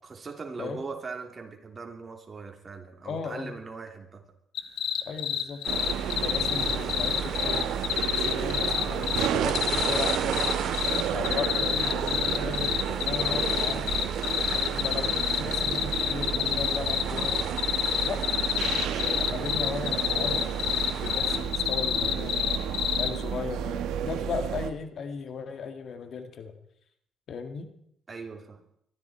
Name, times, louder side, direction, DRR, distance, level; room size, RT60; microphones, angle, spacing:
voice 1, 0.1-4.3 6.7-6.9 14.4-14.7 28.1-28.6, right 4 dB, 35° right, 3 dB, 3.2 m, -40 dB
voice 2, 3.1-3.6 5.1-5.7 6.2-7.8 8.0-10.5 11.1-13.9 14.7-17.4 18.0-18.2 18.8-20.6 21.0-22.7 23.0-26.6 27.3-27.7, left 5 dB, 60° left, 8 dB, 2.0 m, -36 dB
sound 1, 4.6-23.1, left 11 dB, 85° left, 1.3 m, -28 dB
sound 2, 5.6-21.4, right 8 dB, 75° right, 2.2 m, -36 dB
sound 3, 5.7-24.7, right 9 dB, 90° right, 1.2 m, -32 dB
22.5 x 14.0 x 4.4 m, 0.70 s
cardioid pair, 90°, 0 cm